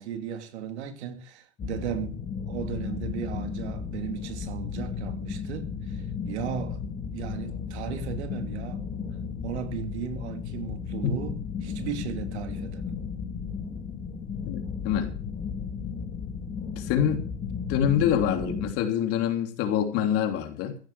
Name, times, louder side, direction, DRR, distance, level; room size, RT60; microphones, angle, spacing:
voice 1, 0.0-2.2 2.5-6.8 7.1-8.8 9.4-12.9, right 9 dB, 70° right, 3.0 m, -36 dB
sound 1, 1.6-18.7, left 6 dB, 20° left, 2.2 m, -34 dB
voice 2, 14.4-15.1 16.8-17.2 17.7-20.8, left 9 dB, 40° left, 3.3 m, -26 dB
15.5 x 10.5 x 5.9 m
supercardioid pair, 135°, 35 cm